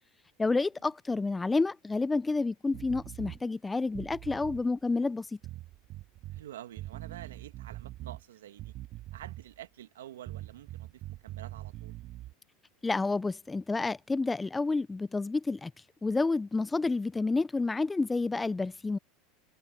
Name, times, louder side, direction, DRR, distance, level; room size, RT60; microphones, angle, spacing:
voice 1, 0.4-5.3 12.8-15.7 16.0-19.0, left 3 dB, 15° left, 0.5 m, -29 dB
sound 1, 2.7-3.4 3.9-4.6 5.4-6.4 6.8-8.2 8.6-9.5 10.3-12.3, right 16 dB, 50° right, 2.1 m, -43 dB
voice 2, 6.3-8.7 9.1-12.0, right 12 dB, 85° right, 1.9 m, -48 dB
hypercardioid pair, 100°, 0 cm